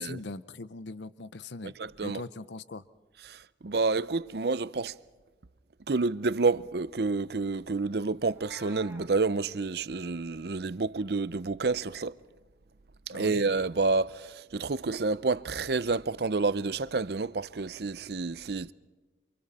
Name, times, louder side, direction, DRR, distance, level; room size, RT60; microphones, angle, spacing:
voice 1, 0.0-2.8 13.1-13.4, left 3 dB, 80° left, 0.8 m, -41 dB
voice 2, 1.6-2.2 3.3-4.9 5.9-12.1 13.1-18.7, right 3 dB, 60° right, 0.6 m, -29 dB
Meow, 8.3-9.1, right 1 dB, 15° right, 1.9 m, -51 dB
29.5 x 27.0 x 4.3 m
head